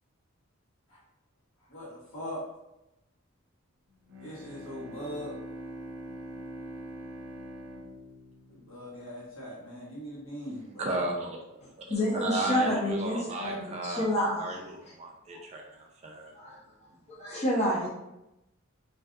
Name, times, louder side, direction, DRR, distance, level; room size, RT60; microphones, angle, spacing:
voice 1, 1.7-2.5 4.2-5.4 8.5-11.0, equal, 75° left, -7 dB, 1.1 m, -40 dB
Bowed string instrument, 4.1-9.3, equal, 85° right, 0.5 m, -43 dB
voice 2, 10.8-16.3, right 2 dB, 30° right, 0 dB, 0.3 m, -35 dB
voice 3, 11.6-14.5 16.3-16.6 17.1-17.9, left 1 dB, 30° left, -4 dB, 0.5 m, -29 dB
2.5 x 2.3 x 2.3 m, 0.91 s
head